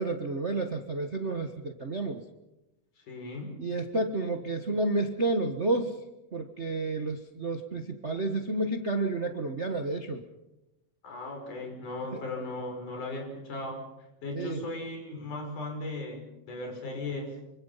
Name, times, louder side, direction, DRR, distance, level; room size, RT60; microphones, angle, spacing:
voice 1, 0.0-2.2 3.6-6.0 6.3-10.2 12.1-12.2 14.3-14.6, right 2 dB, 80° right, 5 dB, 0.6 m, -30 dB
voice 2, 3.0-3.6 11.0-13.8 14.2-17.4, left 2 dB, 70° left, 2 dB, 7.1 m, -37 dB
26.0 x 25.5 x 5.7 m, 0.98 s
omnidirectional pair, 3.7 m